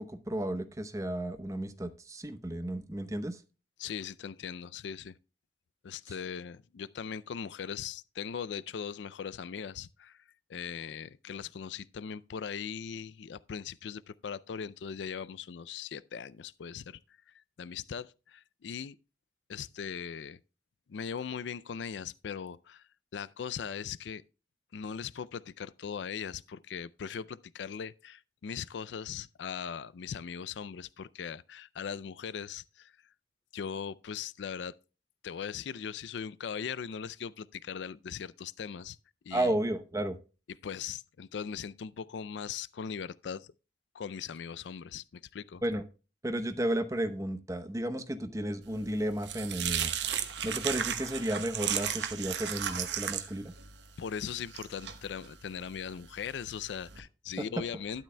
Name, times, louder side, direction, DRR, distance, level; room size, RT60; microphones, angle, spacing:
voice 1, 0.1-3.4 39.3-40.2 45.6-45.8 46.2-49.9 50.4-53.5, right 1 dB, 20° right, 0.8 m, -33 dB
voice 2, 3.8-5.1 5.8-10.2 10.5-17.0 17.6-19.0 19.5-20.4 20.9-22.8 23.1-24.2 24.7-32.9 33.5-34.7 35.2-39.0 39.2-39.5 40.6-43.5 43.9-45.6 54.0-58.0, left 7 dB, 80° left, 0.4 m, -39 dB
sound 1, 48.7-57.0, right 9 dB, 75° right, 1.0 m, -36 dB
12.0 x 10.0 x 2.2 m
head